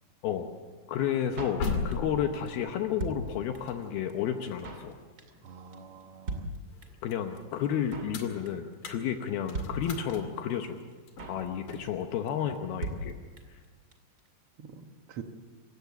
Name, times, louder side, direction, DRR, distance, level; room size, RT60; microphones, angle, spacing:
voice 1, 0.9-5.0 7.0-10.8 11.3-13.2, left 9 dB, 75° left, 5 dB, 2.8 m, -31 dB
Drum kit, 1.4-2.2 2.5-2.6 2.7-3.8 4.1-4.2 4.4-4.9 5.2-5.5 5.7-5.8 6.0-6.1 6.3-7.1 7.4-7.5 7.6-8.2 8.5-8.7 9.0-9.1 9.3-9.4 9.5-10.4 10.6-10.7 10.9-11.5 11.7-12.0 12.3-12.4 12.5-12.6 12.8-13.6 13.9-14.0 14.2-14.3, right 2 dB, 30° right, 2.2 m, -38 dB
sound 1, 1.5-6.2 6.6-12.0, left 4 dB, 60° left, 3.7 m, -40 dB
voice 2, 5.4-6.4 14.6-14.8 15.1-15.2, right 7 dB, 80° right, 6 dB, 1.3 m, -45 dB
27.0 x 16.0 x 7.3 m, 1.5 s
omnidirectional pair, 4.6 m